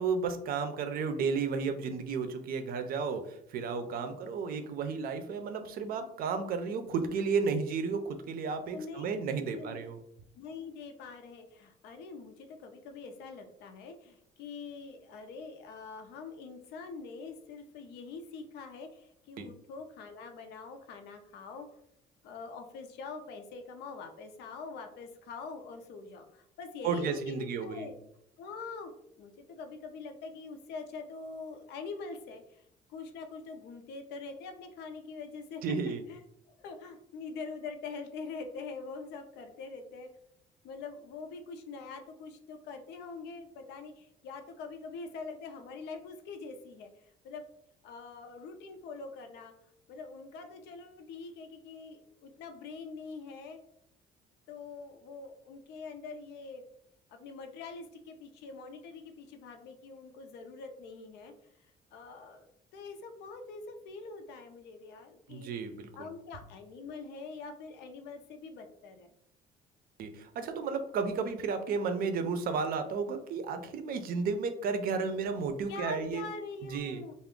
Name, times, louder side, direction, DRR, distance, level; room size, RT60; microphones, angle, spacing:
voice 1, 0.0-10.0 19.4-19.5 26.8-27.9 35.6-36.0 65.3-66.1 70.0-76.2 76.7-77.0, right 5 dB, 60° right, 8 dB, 0.5 m, -33 dB
voice 2, 8.7-9.0 9.5-9.9 10.4-21.7 22.2-27.9 28.4-28.9 29.2-35.8 36.1-36.2 36.5-40.1 40.6-47.4 47.8-49.5 49.9-53.6 54.5-56.6 57.1-61.3 61.9-65.5 66.0-69.1 75.7-77.1, left 4 dB, 80° left, 6 dB, 0.5 m, -44 dB
2.4 x 2.1 x 3.6 m, 0.72 s
cardioid pair, 110°, 17 cm